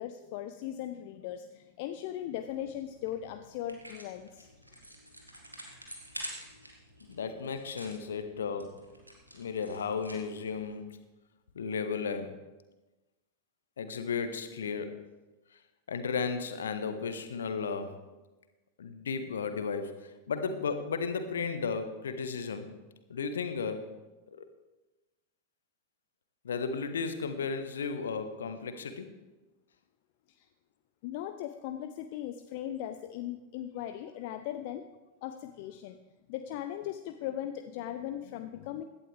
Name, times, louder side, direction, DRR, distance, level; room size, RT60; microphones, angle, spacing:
voice 1, 0.0-4.5 30.3-30.5 31.0-34.8 35.2-36.0 36.3-38.8, left 11 dB, 50° left, 9 dB, 0.5 m, -38 dB
sound 1, 2.3-10.5, right 1 dB, 85° right, 1.8 m, -49 dB
voice 2, 7.0-8.8 9.3-11.0 11.5-12.4 13.8-15.0 15.9-18.0 18.8-22.7 23.1-24.0 24.4-24.5 26.4-29.1, left 5 dB, 65° left, 9 dB, 1.1 m, -34 dB
16.5 x 11.5 x 3.4 m, 1.1 s
figure-of-eight pair, 90°, 0 cm